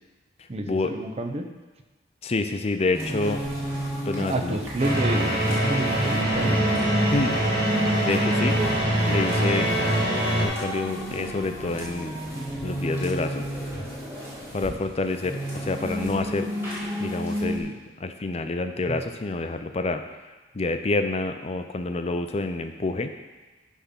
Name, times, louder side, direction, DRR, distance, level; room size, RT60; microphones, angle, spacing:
voice 1, 0.5-1.5 4.2-6.6 18.9-19.0, right 1 dB, 30° right, 5 dB, 0.6 m, -29 dB
voice 2, 2.2-3.4 4.0-4.6 7.1-7.4 8.0-8.6 9.1-9.7 10.4-12.2 12.6-13.5 14.5-16.5 17.0-20.0 20.5-23.1, left 3 dB, 30° left, 7 dB, 0.5 m, -28 dB
sound 1, 2.9-17.6, equal, 10° right, 1.9 m, -32 dB
sound 2, 4.8-10.5, right 1 dB, 50° right, 1.8 m, -24 dB
10.0 x 3.7 x 5.7 m, 1.2 s
head